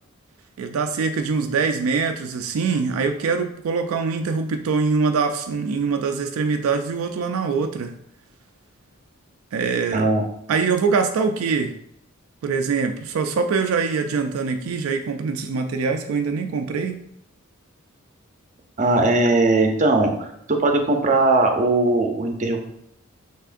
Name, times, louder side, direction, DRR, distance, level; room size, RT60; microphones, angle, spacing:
voice 1, 0.6-7.9 9.5-10.1 10.5-11.7 12.4-17.0, right 5 dB, 80° right, 6 dB, 0.4 m, -23 dB
voice 2, 9.9-10.2 18.8-22.6, right 2 dB, 35° right, 3 dB, 0.6 m, -19 dB
5.8 x 3.6 x 2.5 m, 0.74 s
head